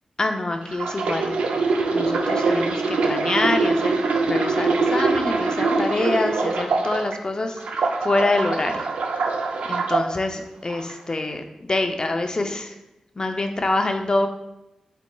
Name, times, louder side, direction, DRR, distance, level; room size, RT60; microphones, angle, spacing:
voice 1, 0.2-1.3 1.9-8.9 9.2-9.3 9.7-12.8 13.2-14.3, left 2 dB, 40° left, 6 dB, 0.5 m, -25 dB
sound 1, 0.7-7.2 7.6-10.0 10.7-10.9, right 3 dB, 90° right, 0.4 m, -23 dB
4.2 x 4.2 x 2.3 m, 0.92 s
cardioid pair, 50°, 2 cm